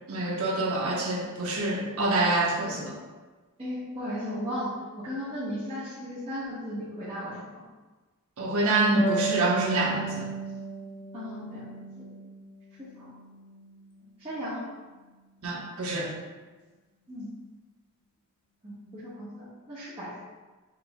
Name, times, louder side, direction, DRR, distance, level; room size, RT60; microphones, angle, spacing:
voice 1, 0.1-2.9 8.4-10.3 15.4-16.1, right 2 dB, 75° right, -2 dB, 1.0 m, -26 dB
voice 2, 3.6-4.7 5.0-7.6 11.1-12.0 13.0-13.1 14.2-14.6 17.1-17.3 18.6-20.2, equal, 25° right, -13 dB, 1.2 m, -36 dB
Harp, 8.9-12.3 12.7-13.8, right 2 dB, 25° left, 0.9 m, -33 dB
5.2 x 4.1 x 2.2 m, 1.3 s
head